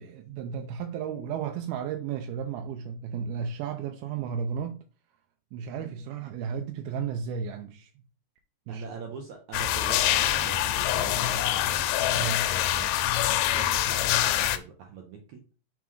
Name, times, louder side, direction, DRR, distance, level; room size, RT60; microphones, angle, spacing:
voice 1, 0.0-4.8 5.5-7.9 8.7-8.8 12.1-12.5, right 7 dB, 85° right, 2.5 m, -33 dB
voice 2, 8.7-12.9 13.2-15.4, right 6 dB, 70° right, 1.9 m, -42 dB
sound 1, 9.5-14.6, left 13 dB, 85° left, 2.4 m, -25 dB
5.9 x 4.0 x 4.6 m
omnidirectional pair, 4.2 m